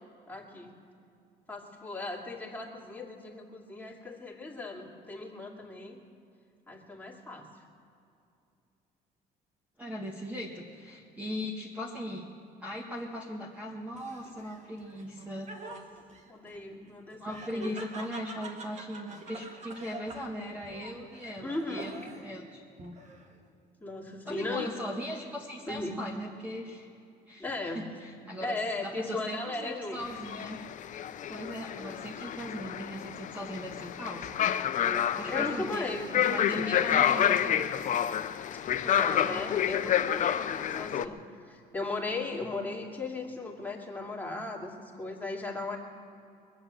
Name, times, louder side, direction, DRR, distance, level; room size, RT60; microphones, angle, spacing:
voice 1, 0.3-0.7 1.5-6.0 6.7-7.5 15.6-15.8 16.3-17.8 21.4-21.9 23.8-24.8 25.7-26.0 27.4-27.8 28.4-30.0 34.8-36.2 36.5-37.4 38.7-45.8, left 2 dB, 10° left, -2 dB, 2.6 m, -37 dB
voice 2, 9.8-12.3 12.6-15.5 17.2-21.9 22.2-22.9 24.2-26.9 27.3-28.5 28.8-30.6 31.3-34.3 35.2-35.9 36.1-37.7 39.5-40.0, equal, 10° right, -2 dB, 1.7 m, -39 dB
Laughter, 13.9-22.4 22.8-23.5, right 3 dB, 45° right, 1.7 m, -47 dB
sound 1, 30.0-41.1, left 10 dB, 50° left, 0.6 m, -29 dB
23.0 x 8.0 x 7.6 m, 2.6 s
cardioid pair, 110°, 17 cm